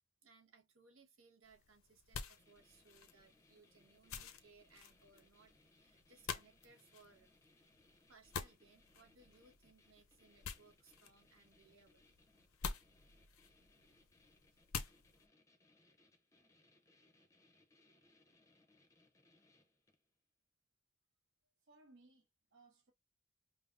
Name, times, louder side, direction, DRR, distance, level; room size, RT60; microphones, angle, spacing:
voice 1, 0.2-7.4 8.1-12.2 13.9-14.0 14.5-14.6, right 4 dB, 75° right, 1.3 m, -67 dB
sound 1, 1.4-15.3, left 6 dB, 80° left, 0.6 m, -50 dB
sound 2, 2.4-20.1, left 2 dB, 15° left, 0.6 m, -71 dB
voice 2, 21.6-22.9, right 2 dB, 55° right, 0.9 m, -65 dB
5.4 x 2.0 x 2.5 m
head